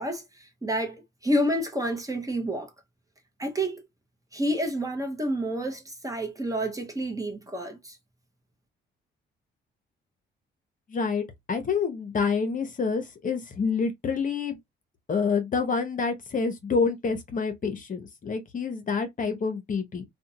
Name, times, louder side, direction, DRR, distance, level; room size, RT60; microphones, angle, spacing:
voice 1, 0.0-2.7 3.4-3.8 4.3-8.0, equal, 15° right, 0.8 m, -29 dB
voice 2, 10.9-14.6 15.1-20.0, left 5 dB, 40° left, 0.8 m, -28 dB
2.5 x 2.2 x 2.7 m
cardioid pair, 90°, 20 cm